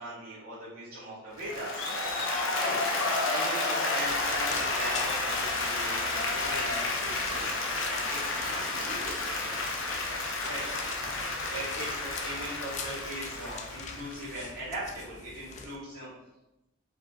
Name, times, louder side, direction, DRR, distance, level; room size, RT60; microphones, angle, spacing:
voice 1, 0.0-1.8 2.6-2.8 3.3-9.6 10.4-10.7 11.5-16.1, right 1 dB, 85° right, -9 dB, 1.5 m, -40 dB
Applause, 1.4-14.6, left 2 dB, 65° left, 0.8 m, -31 dB
sound 1, 4.0-15.8, left 4 dB, 35° left, 0.3 m, -43 dB
5.0 x 3.8 x 2.3 m, 0.95 s
head